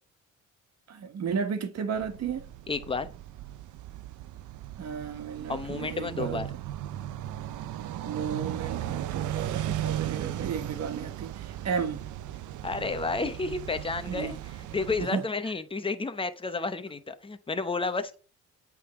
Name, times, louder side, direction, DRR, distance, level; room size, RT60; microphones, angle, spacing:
voice 1, 0.9-2.4 4.8-6.4 8.0-12.0 14.1-14.4 15.0-15.2, right 6 dB, 60° right, 1.5 m, -33 dB
sound 1, 2.0-15.1, right 12 dB, 80° right, 0.6 m, -36 dB
voice 2, 2.7-3.1 5.5-6.5 12.6-14.4 14.7-18.1, left 3 dB, 15° left, 0.9 m, -31 dB
8.2 x 3.7 x 5.9 m
cardioid pair, 90°, 30 cm